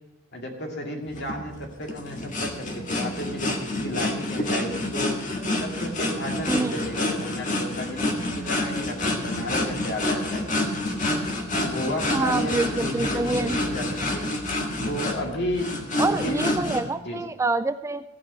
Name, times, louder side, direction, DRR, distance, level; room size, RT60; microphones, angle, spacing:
voice 1, 0.3-5.2 5.6-10.6 11.5-14.4 14.8-16.6 17.0-17.2, left 1 dB, 60° left, 1 dB, 2.3 m, -33 dB
sound 1, 1.1-16.8, left 1 dB, 40° left, 1.7 m, -28 dB
voice 2, 6.5-6.8 12.1-13.6 16.0-18.0, right 3 dB, 15° right, 11 dB, 0.3 m, -26 dB
15.5 x 5.3 x 8.4 m, 0.92 s
head